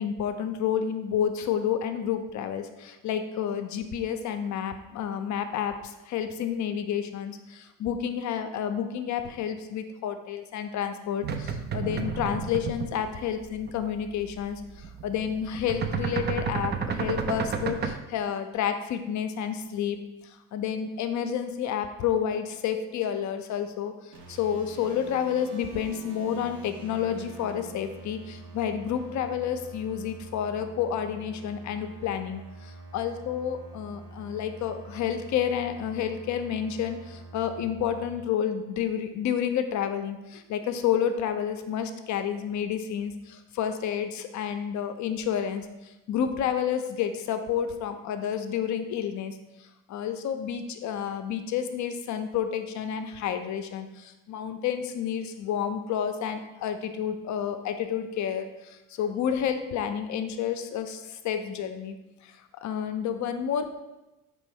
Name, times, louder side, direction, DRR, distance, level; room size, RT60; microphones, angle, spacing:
voice 1, 0.0-20.0 20.2-49.4 49.9-62.0 62.2-63.7, left 8 dB, 45° left, 8 dB, 0.5 m, -30 dB
sound 1, 11.2-13.1 13.4-13.8 14.0-14.3 14.5-18.0, right 6 dB, 25° right, 0.4 m, -31 dB
sound 2, 24.1-38.2, right 3 dB, 80° right, 1.0 m, -46 dB
4.3 x 3.1 x 3.4 m, 0.99 s
hypercardioid pair, 65°, 42 cm